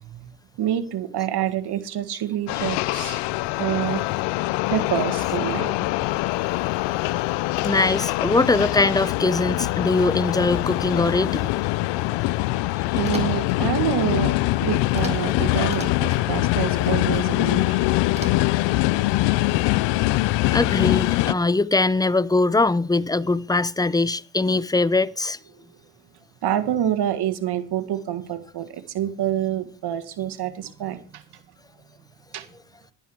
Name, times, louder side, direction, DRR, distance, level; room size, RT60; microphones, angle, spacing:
voice 1, 0.6-3.2 3.6-4.0 4.7-5.9 12.9-14.3 14.6-17.9 20.2-20.3 26.4-31.2 32.3-32.5, right 11 dB, 70° right, 1.9 m, -27 dB
sound 1, 2.5-21.3, left 19 dB, 85° left, 0.6 m, -23 dB
voice 2, 7.6-11.5 12.1-12.2 20.1-20.2 20.5-25.4, left 3 dB, 10° left, 0.6 m, -22 dB
sound 2, 13.0-13.6 14.9-15.3 15.6-16.2 18.1-18.7, right 3 dB, 15° right, 3.4 m, -39 dB
12.0 x 10.5 x 4.7 m
supercardioid pair, 65°, 41 cm